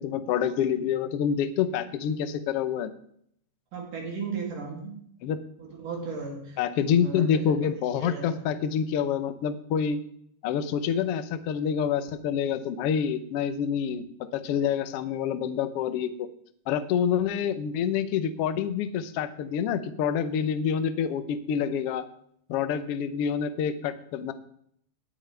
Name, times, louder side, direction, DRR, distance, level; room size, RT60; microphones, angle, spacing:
voice 1, 0.0-2.9 5.2-5.4 6.6-10.0 10.4-14.0 14.3-16.3 16.7-22.0 22.5-24.3, left 8 dB, 75° left, 11 dB, 1.3 m, -27 dB
voice 2, 3.7-5.0 5.6-7.4 8.0-8.4, right 4 dB, 70° right, -1 dB, 4.3 m, -36 dB
19.5 x 8.9 x 3.4 m, 0.67 s
omnidirectional pair, 3.9 m